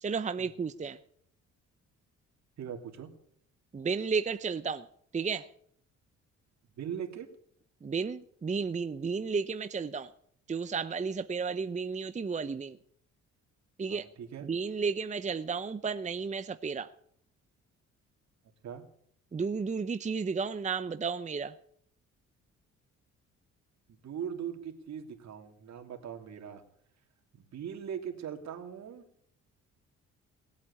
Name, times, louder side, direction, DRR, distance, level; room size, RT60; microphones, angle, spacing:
voice 1, 0.0-1.0 3.7-4.8 5.1-5.5 7.8-10.1 10.5-12.8 13.8-14.1 14.4-16.9 19.3-21.5, right 5 dB, 25° right, 0.7 m, -33 dB
voice 2, 2.6-3.1 6.8-7.3 13.9-14.5 18.6-18.8 23.9-26.6 27.3-29.1, right 8 dB, 65° right, 2.9 m, -40 dB
19.5 x 8.5 x 8.6 m
cardioid pair, 90°, 30 cm